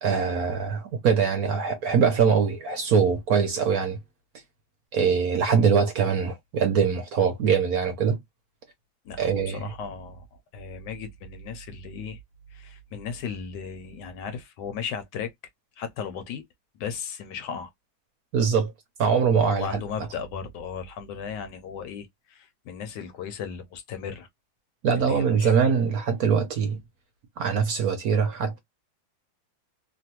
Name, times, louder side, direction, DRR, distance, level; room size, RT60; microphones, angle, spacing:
voice 1, 0.0-4.0 4.9-8.2 9.2-9.7 18.3-18.7 19.0-19.8 24.8-26.8 27.4-28.6, right 6 dB, 60° right, 1.0 m, -23 dB
voice 2, 9.1-10.3 10.5-12.2 12.5-15.3 15.8-16.4 16.8-17.7 19.3-24.3 24.9-25.5, left 6 dB, 75° left, 1.1 m, -36 dB
3.2 x 2.2 x 2.8 m
omnidirectional pair, 2.1 m